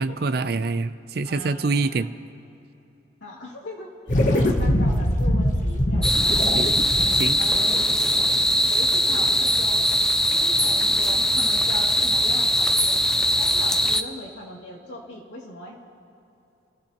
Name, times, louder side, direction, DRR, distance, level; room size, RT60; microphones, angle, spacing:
voice 1, 0.0-2.1 6.5-6.7 7.2-7.4, right 3 dB, 55° right, 12 dB, 0.5 m, -25 dB
voice 2, 1.2-2.1 3.2-3.9 4.3-6.5 7.4-8.0 8.7-9.8 10.3-13.0 13.4-15.8, left 1 dB, 70° left, -3 dB, 2.7 m, -38 dB
sound 1, 4.1-8.7, left 1 dB, 40° left, 1.0 m, -23 dB
sound 2, 6.0-14.0, equal, 5° left, 0.3 m, -21 dB
29.5 x 14.5 x 3.0 m, 2.9 s
head